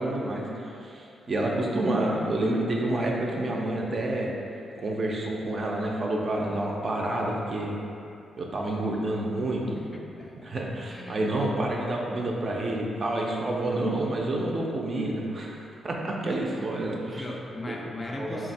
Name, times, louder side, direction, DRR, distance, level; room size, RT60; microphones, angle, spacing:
voice 1, 0.0-4.3 4.8-7.8 8.4-9.8 10.4-17.3 17.7-17.8 18.1-18.5, right 1 dB, 40° right, -2 dB, 0.4 m, -29 dB
voice 2, 9.7-10.5 10.9-11.2 16.3-16.4 17.0-18.5, left 1 dB, 20° left, -1 dB, 0.3 m, -38 dB
3.4 x 2.4 x 4.0 m, 2.7 s
cardioid pair, 130°, 0 cm